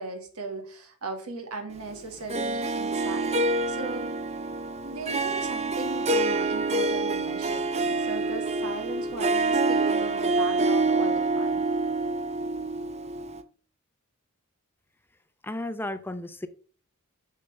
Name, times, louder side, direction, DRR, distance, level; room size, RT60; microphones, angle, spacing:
voice 1, 0.0-4.2 4.8-11.7, right 3 dB, 85° right, 5 dB, 1.9 m, -38 dB
Harp, 2.3-13.4, right 3 dB, 30° right, 0.6 m, -27 dB
voice 2, 15.4-16.5, left 1 dB, 10° left, 10 dB, 0.6 m, -33 dB
7.2 x 6.6 x 3.3 m, 0.41 s
head